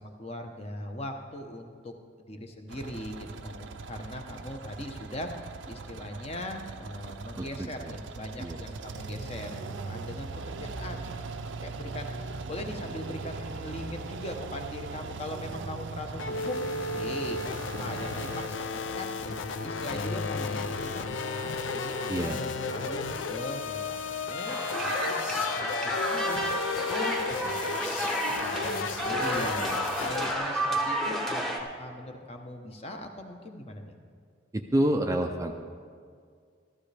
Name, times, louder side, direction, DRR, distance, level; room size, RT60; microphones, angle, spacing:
voice 1, 0.0-1.9 2.3-5.3 5.6-16.6 16.9-19.3 19.6-26.4 26.8-28.0 28.3-34.0, left 1 dB, 30° left, 4 dB, 0.9 m, -40 dB
sound 1, 2.7-18.5, right 3 dB, 75° right, 0.5 m, -40 dB
voice 2, 7.4-7.9 8.4-8.6 22.1-22.4 34.5-35.5, right 1 dB, 15° right, 4 dB, 0.4 m, -28 dB
sound 2, 16.2-30.3, left 4 dB, 80° left, 0.6 m, -33 dB
sound 3, 24.5-31.6, equal, ahead, 0.9 m, -31 dB
14.5 x 13.5 x 3.4 m, 2.2 s
head